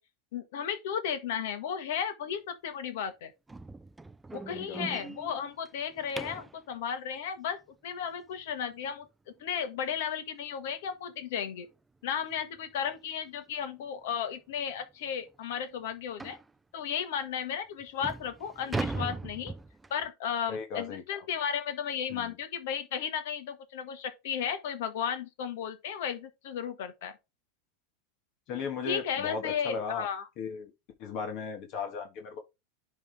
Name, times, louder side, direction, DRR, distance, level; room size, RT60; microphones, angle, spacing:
voice 1, 0.3-3.3 4.3-7.6 7.8-9.1 9.4-11.7 12.0-16.4 16.7-19.5 19.9-27.1 28.8-30.3, left 8 dB, 70° left, 1.5 m, -34 dB
sound 1, 3.5-6.6 9.4-9.5 10.0-10.2 10.5-10.6 11.1-11.2 12.3-12.4 12.8-13.0 13.6-13.7 14.1-14.2 14.7-14.8 16.2-16.5 17.2-17.3 17.8-20.1, right 3 dB, 10° right, 0.4 m, -39 dB
voice 2, 4.5-5.0 20.5-21.2 22.1-22.4 28.5-30.1 30.4-30.7 31.0-32.4, left 5 dB, 50° left, 1.5 m, -37 dB
10.5 x 3.5 x 3.4 m
hypercardioid pair, 100°, 0 cm